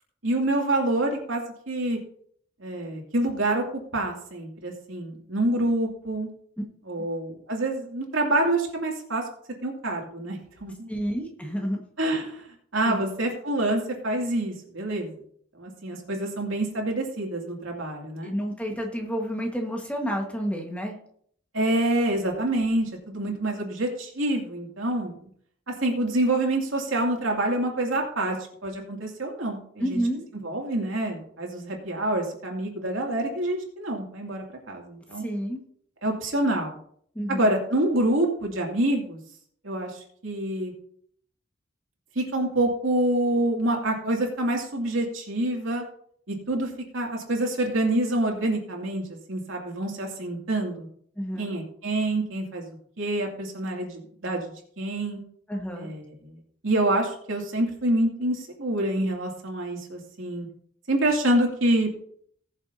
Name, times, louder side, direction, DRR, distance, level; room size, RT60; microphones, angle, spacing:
voice 1, 0.2-2.0 2.6-3.6 3.9-6.3 6.9-9.2 9.6-10.9 12.0-12.4 12.7-15.1 15.6-18.3 21.5-25.2 25.8-28.4 28.6-30.0 30.4-35.2 36.0-36.7 37.3-39.2 39.6-40.7 42.1-45.8 46.3-50.9 51.4-52.7 53.0-54.5 54.8-55.2 55.8-56.3 56.6-60.5 60.9-61.9, right 1 dB, 85° right, 0 dB, 2.6 m, -27 dB
voice 2, 10.9-11.8 12.8-13.0 18.2-20.9 29.8-30.2 35.2-35.6 37.1-37.5 51.2-51.5 55.5-55.9, equal, 5° left, 1 dB, 1.5 m, -30 dB
19.5 x 7.2 x 2.8 m, 0.63 s
head